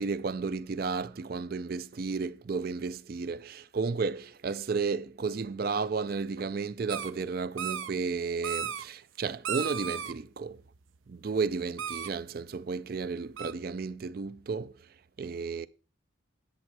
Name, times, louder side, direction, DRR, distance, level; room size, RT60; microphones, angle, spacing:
voice 1, 0.0-10.6 11.1-14.7 15.2-15.7, right 4 dB, 50° right, 0.4 m, -33 dB
sound 1, 6.9-7.1 7.6-7.9 8.4-8.8 9.4-10.1 11.8-12.1 13.4-13.5, right 8 dB, 80° right, 0.7 m, -34 dB
10.5 x 7.5 x 4.6 m
head